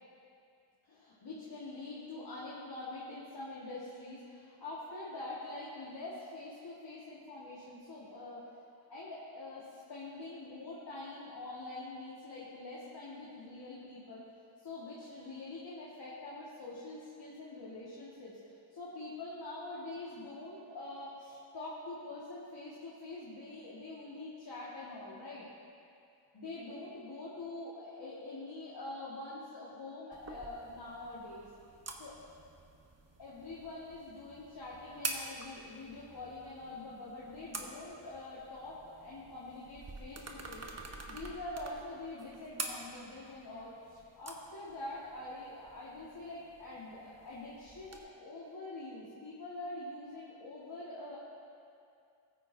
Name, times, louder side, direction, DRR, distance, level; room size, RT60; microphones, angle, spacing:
voice 1, 0.9-8.4 8.9-14.3 14.6-25.5 26.3-31.5 32.0-32.1 33.2-51.2, left 2 dB, 55° left, -8 dB, 2.0 m, -45 dB
sound 1, 30.1-48.0, right 3 dB, 35° right, 1.1 m, -47 dB
14.5 x 9.2 x 2.8 m, 2.5 s
cardioid pair, 70°, 48 cm